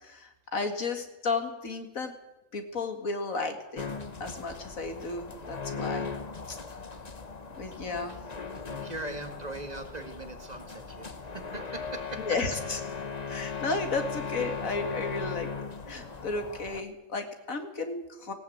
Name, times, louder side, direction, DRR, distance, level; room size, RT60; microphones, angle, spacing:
voice 1, 0.0-2.1 2.5-3.9 4.2-6.1 6.5-6.6 7.6-8.2 12.2-12.8 13.3-15.5 15.9-18.3, left 3 dB, 85° left, 6 dB, 2.6 m, -33 dB
sound 1, 3.8-16.8, left 5 dB, 35° left, 1.2 m, -38 dB
voice 2, 8.6-12.4, right 2 dB, 30° right, 6 dB, 2.1 m, -40 dB
18.0 x 18.0 x 8.8 m, 0.97 s
omnidirectional pair, 1.4 m